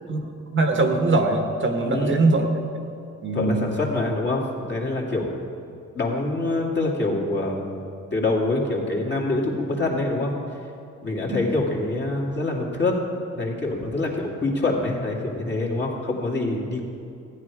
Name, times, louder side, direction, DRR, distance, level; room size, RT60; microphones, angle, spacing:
voice 1, 0.5-2.6 3.2-3.7 11.3-11.4, right 2 dB, 40° right, 4 dB, 1.3 m, -22 dB
voice 2, 1.8-2.3 3.3-5.4 5.9-7.8 8.1-10.3 11.0-13.0 13.3-16.8, left 2 dB, 35° left, -2 dB, 2.5 m, -25 dB
14.5 x 9.7 x 4.9 m, 2.7 s
cardioid pair, 90°, 30 cm